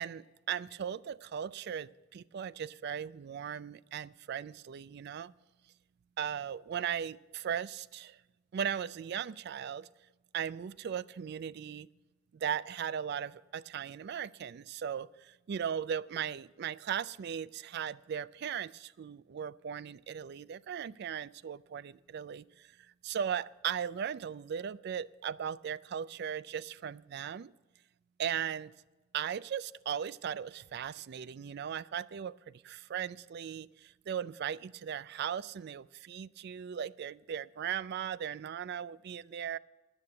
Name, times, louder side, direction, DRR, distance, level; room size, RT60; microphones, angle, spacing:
voice 1, 0.0-5.3 6.2-8.2 8.5-9.9 10.3-11.9 12.3-22.7 23.0-27.5 28.2-28.7 29.1-39.6, right 8 dB, 55° right, 19 dB, 0.3 m, -38 dB
10.5 x 8.0 x 8.5 m, 1.1 s
head